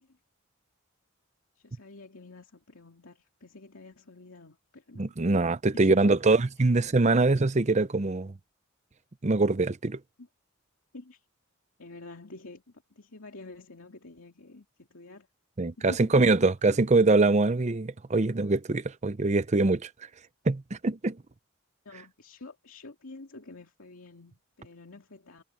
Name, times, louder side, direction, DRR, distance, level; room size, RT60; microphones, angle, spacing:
voice 1, 1.6-5.1 5.7-6.0 6.6-6.7 10.2-10.3 10.9-11.2 11.8-15.3 15.8-16.2 16.6-16.8 21.8-25.4, left 2 dB, 80° left, 2.4 m, -48 dB
voice 2, 5.0-8.3 9.2-10.0 15.6-19.9 20.5-21.2, right 3 dB, 35° right, 0.6 m, -23 dB
head